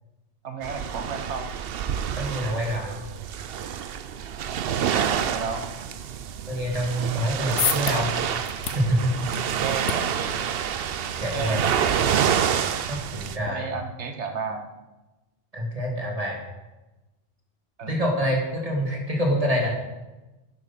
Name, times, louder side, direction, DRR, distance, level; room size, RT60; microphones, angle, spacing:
voice 1, 0.4-1.5 4.9-5.7 9.6-10.4 11.3-12.4 13.5-14.6 17.8-18.0, right 5 dB, 85° right, 5 dB, 1.4 m, -33 dB
sound 1, 0.6-13.4, right 8 dB, 65° right, 0.8 m, -28 dB
voice 2, 2.2-2.9 6.5-8.1 8.7-9.1 11.2-11.6 12.9-13.7 15.5-16.4 17.9-19.7, equal, 30° right, 0 dB, 2.3 m, -26 dB
sound 2, 7.2-13.5, left 9 dB, 85° left, 1.0 m, -35 dB
10.5 x 7.7 x 5.8 m, 1.1 s
omnidirectional pair, 1.1 m